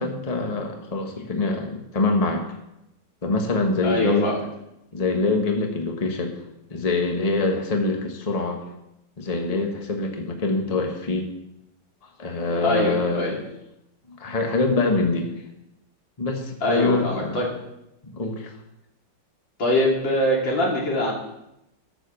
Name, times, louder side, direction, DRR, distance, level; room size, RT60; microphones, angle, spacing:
voice 1, 0.0-2.4 3.2-4.3 4.9-6.3 6.7-8.6 9.2-11.3 12.2-13.4 14.2-15.3 16.2-17.4 18.0-18.5, left 3 dB, 20° left, 3 dB, 1.4 m, -24 dB
voice 2, 3.8-4.4 12.6-13.4 16.6-17.5 19.6-21.1, left 1 dB, 80° left, -3 dB, 3.7 m, -23 dB
12.0 x 7.2 x 7.0 m, 0.85 s
omnidirectional pair, 2.1 m